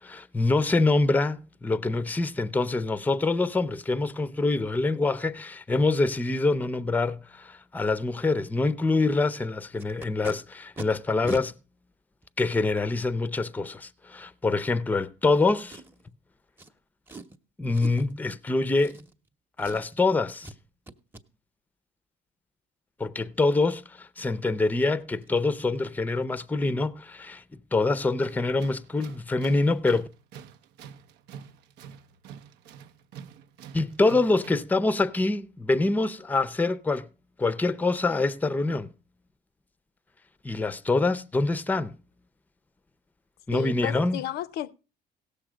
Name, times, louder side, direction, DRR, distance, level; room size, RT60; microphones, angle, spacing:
voice 1, 0.0-11.5 12.4-15.8 17.6-19.0 19.6-20.5 23.0-27.4 27.7-30.1 33.7-37.1 37.4-38.9 40.4-42.0 43.5-44.2, left 3 dB, 10° left, 0.5 m, -25 dB
Packing tape duct tape, 9.8-10.3 10.8-10.9 11.2-11.4 12.2-12.3 15.7-16.1 16.6-16.7 17.1-17.4 17.7-18.1 18.8-19.3 19.6-20.0 20.4-20.6 20.9-21.2 24.3-24.4 24.7-24.9 25.2-25.4 25.6-25.9 26.2-26.3, right 2 dB, 10° right, 0.8 m, -41 dB
Tools, 28.2-34.8, right 7 dB, 85° right, 0.7 m, -47 dB
voice 2, 43.5-44.7, left 12 dB, 70° left, 0.5 m, -33 dB
16.5 x 6.8 x 4.9 m
cardioid pair, 110°, 17 cm